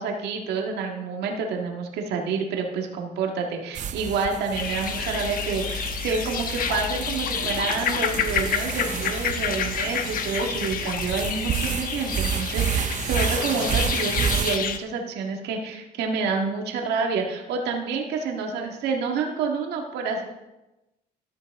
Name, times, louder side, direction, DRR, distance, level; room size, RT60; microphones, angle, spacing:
voice 1, 0.0-20.2, right 4 dB, 80° right, 1 dB, 1.8 m, -28 dB
sound 1, 3.7-14.6, right 8 dB, 45° right, 0.7 m, -30 dB
sound 2, 4.5-14.8, left 7 dB, 55° left, 1.1 m, -29 dB
13.5 x 10.5 x 3.6 m, 1.0 s
cardioid pair, 110°, 17 cm